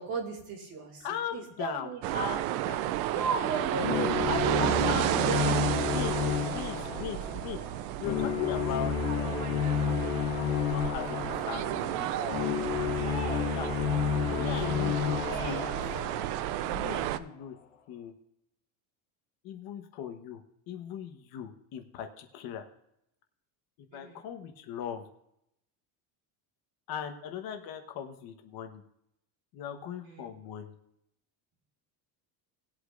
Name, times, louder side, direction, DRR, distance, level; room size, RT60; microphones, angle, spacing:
voice 1, 0.0-2.4 3.1-5.9 11.6-11.8 12.9-13.7 14.2-15.8 23.9-24.2 30.0-30.3, right 4 dB, 45° right, 0 dB, 2.6 m, -36 dB
voice 2, 1.0-3.6 3.9-4.1 4.6-5.0 5.9-6.1 6.4-7.6 8.0-9.8 10.7-12.9 13.5-13.7 14.2-16.1 16.6-17.5 17.9-18.1 19.4-20.4 20.7-22.6 23.8-25.1 26.9-28.8 29.5-30.7, left 8 dB, 50° left, 6 dB, 1.2 m, -40 dB
sound 1, 2.0-17.2, right 13 dB, 70° right, 0.7 m, -32 dB
sound 2, 3.8-16.9, left 7 dB, 70° left, 1.9 m, -31 dB
20.0 x 8.4 x 2.5 m, 0.79 s
cardioid pair, 165°, 47 cm